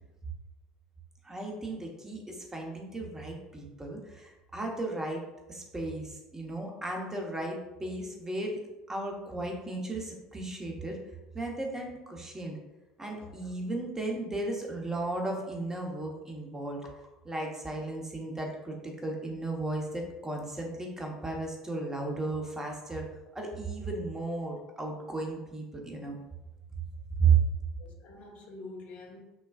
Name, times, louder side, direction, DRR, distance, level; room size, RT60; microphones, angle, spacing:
voice 1, 1.2-5.2 5.5-8.6 8.9-11.0 11.3-12.6 13.0-16.8 17.3-23.1 23.3-26.2 27.2-27.4, right 4 dB, 15° right, 1 dB, 1.0 m, -34 dB
voice 2, 27.8-29.2, left 3 dB, 55° left, 0 dB, 0.8 m, -47 dB
6.2 x 2.3 x 2.4 m, 1.0 s
hypercardioid pair, 70°, 3 cm